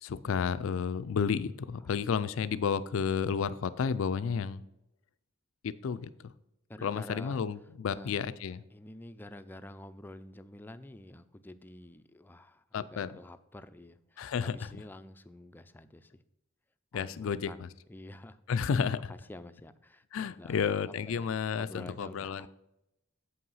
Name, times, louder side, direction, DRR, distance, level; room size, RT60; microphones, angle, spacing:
voice 1, 0.0-4.6 5.6-6.3 6.8-8.6 12.7-13.1 14.2-14.6 16.9-17.7 18.5-19.1 20.1-22.5, left 6 dB, 80° left, 14 dB, 0.4 m, -31 dB
voice 2, 6.7-7.4 7.9-8.1 8.7-16.1 16.9-18.4 19.1-22.5, left 1 dB, 10° left, 11 dB, 0.4 m, -49 dB
8.0 x 5.6 x 5.5 m, 0.85 s
head